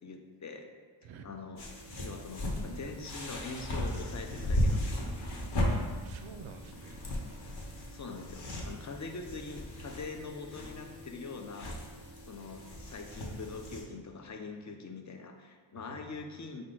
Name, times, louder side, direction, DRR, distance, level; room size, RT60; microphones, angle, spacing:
voice 1, 0.0-0.6 1.2-1.6 2.0-5.1 7.9-11.8 12.2-16.6, left 4 dB, 40° left, 4 dB, 0.5 m, -43 dB
sound 1, 1.6-13.8, left 1 dB, 55° left, 0.9 m, -36 dB
voice 2, 5.7-7.0 10.5-10.6 15.7-16.2, right 5 dB, 85° right, 6 dB, 0.5 m, -49 dB
4.4 x 2.5 x 3.7 m, 1.5 s
cardioid pair, 60°, 47 cm